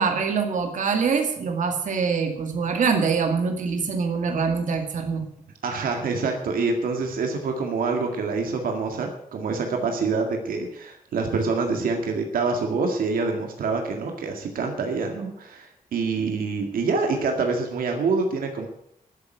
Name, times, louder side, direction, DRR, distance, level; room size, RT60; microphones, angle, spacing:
voice 1, 0.0-5.2, right 5 dB, 65° right, 4 dB, 2.3 m, -24 dB
voice 2, 5.6-18.7, right 4 dB, 90° right, 4 dB, 2.0 m, -26 dB
12.5 x 7.7 x 9.4 m, 0.76 s
wide cardioid pair, 150°, 14 cm